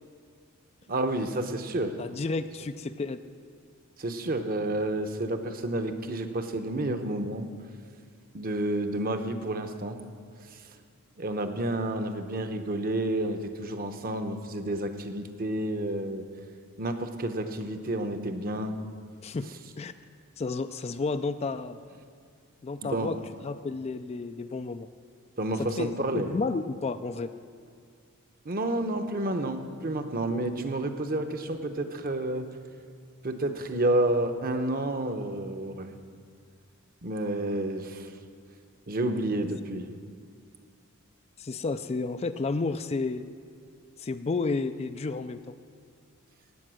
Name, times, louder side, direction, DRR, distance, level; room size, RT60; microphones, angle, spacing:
voice 1, 0.9-2.0 4.0-7.5 8.3-10.0 10.5-10.6 11.2-16.2 16.8-18.8 22.8-23.2 25.4-26.3 28.4-32.5 33.2-35.9 37.0-38.1 38.9-39.9, right 1 dB, 40° right, 7 dB, 0.9 m, -30 dB
voice 2, 2.0-3.2 19.2-19.5 19.8-19.9 20.4-21.8 22.6-23.2 23.4-24.9 25.8-27.3 41.4-43.2 44.0-45.6, left 3 dB, 30° left, 10 dB, 0.3 m, -31 dB
16.5 x 8.9 x 6.3 m, 2.1 s
head